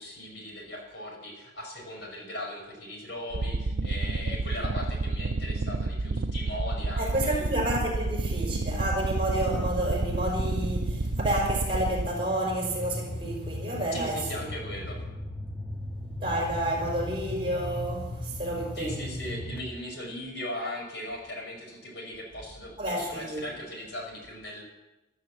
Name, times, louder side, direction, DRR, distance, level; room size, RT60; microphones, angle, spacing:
voice 1, 0.0-7.5 13.9-15.0 18.7-24.6, left 1 dB, 60° left, 5.6 m, -38 dB
sound 1, 3.3-12.1, right 3 dB, 65° right, 0.6 m, -30 dB
voice 2, 7.0-14.5 16.2-19.0 22.8-23.5, right 1 dB, 25° right, 5.0 m, -30 dB
sound 2, 8.0-19.6, left 1 dB, 10° left, 1.5 m, -37 dB
14.0 x 13.0 x 7.5 m
head